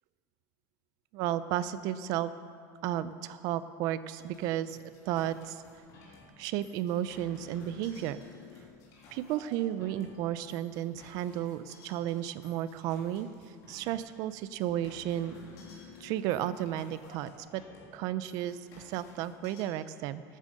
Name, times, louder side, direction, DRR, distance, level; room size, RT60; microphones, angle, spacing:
voice 1, 1.1-2.3 2.8-4.8 5.1-5.6 6.4-8.2 9.1-13.3 13.7-15.3 16.0-17.6 17.9-20.2, right 12 dB, 45° right, 14 dB, 0.5 m, -33 dB
sound 1, 4.2-19.7, left 3 dB, 40° left, 3.3 m, -54 dB
13.0 x 9.2 x 6.5 m, 2.3 s
supercardioid pair, 165°, 9 cm